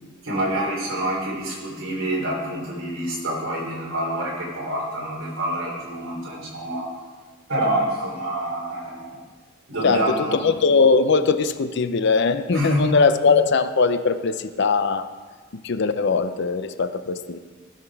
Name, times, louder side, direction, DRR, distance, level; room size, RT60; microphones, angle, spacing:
voice 1, 0.2-6.9 7.5-9.2 9.7-10.4 12.5-12.9, right 1 dB, 70° right, -3 dB, 3.1 m, -27 dB
voice 2, 9.8-15.1 15.6-17.4, left 4 dB, 55° left, 11 dB, 0.5 m, -20 dB
14.5 x 5.9 x 4.6 m, 1.4 s
head